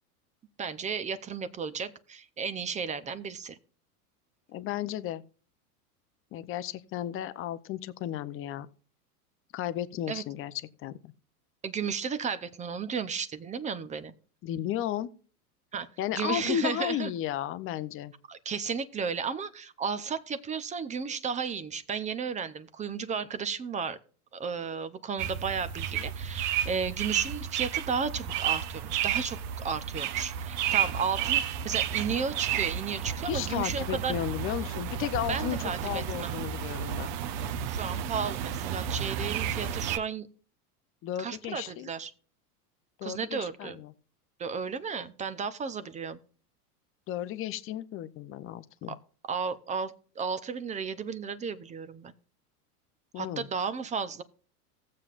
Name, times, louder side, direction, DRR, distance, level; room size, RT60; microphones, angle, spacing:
voice 1, 0.6-3.6 10.1-10.2 11.6-14.1 15.7-17.1 18.3-24.0 24.3-34.2 35.3-36.3 37.7-40.3 41.2-42.1 43.0-43.8 44.4-46.2 48.9-49.0 49.3-52.1 53.2-54.2, right 6 dB, 15° right, 0.5 m, -33 dB
voice 2, 4.5-5.2 6.3-8.7 9.5-10.5 10.8-11.1 14.4-15.1 16.0-18.1 33.3-37.1 41.0-41.9 43.0-43.9 47.1-48.9 53.1-53.5, left 11 dB, 30° left, 0.6 m, -34 dB
sound 1, 25.2-40.0, right 9 dB, 50° right, 0.8 m, -32 dB
16.0 x 7.6 x 2.4 m
hypercardioid pair, 115°, 46 cm